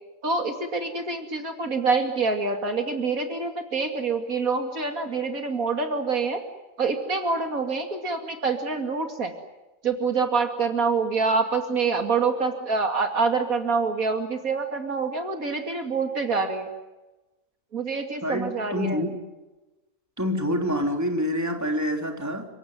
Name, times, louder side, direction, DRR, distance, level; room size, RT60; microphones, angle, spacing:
voice 1, 0.2-6.4 6.8-9.3 9.8-16.7 17.7-19.0, right 4 dB, 65° right, 5 dB, 3.0 m, -26 dB
voice 2, 18.2-19.2 20.2-22.5, equal, 10° right, 3 dB, 3.6 m, -27 dB
30.0 x 17.5 x 9.5 m, 1.1 s
omnidirectional pair, 1.6 m